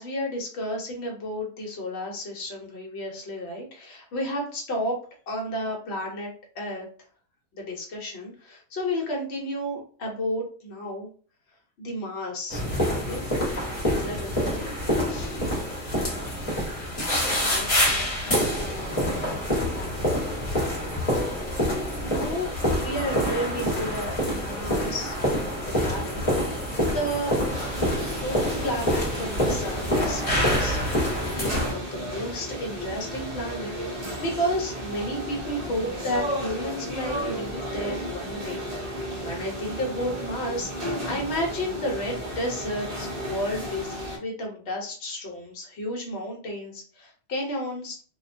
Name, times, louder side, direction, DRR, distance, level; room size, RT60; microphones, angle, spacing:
voice 1, 0.0-5.0 5.3-6.9 7.5-11.1 11.8-12.7 12.9-14.7 15.1-15.4 21.1-22.5 22.8-25.2 25.6-27.4 28.2-38.6 38.9-48.0, equal, 60° left, 0 dB, 1.0 m, -32 dB
sound 1, 12.5-31.7, equal, 30° left, 1.0 m, -26 dB
voice 2, 17.1-20.4, left 3 dB, 85° left, 1 dB, 1.0 m, -41 dB
sound 2, 27.5-44.2, equal, 40° right, 0.7 m, -34 dB
2.5 x 2.2 x 2.5 m, 0.41 s
omnidirectional pair, 1.3 m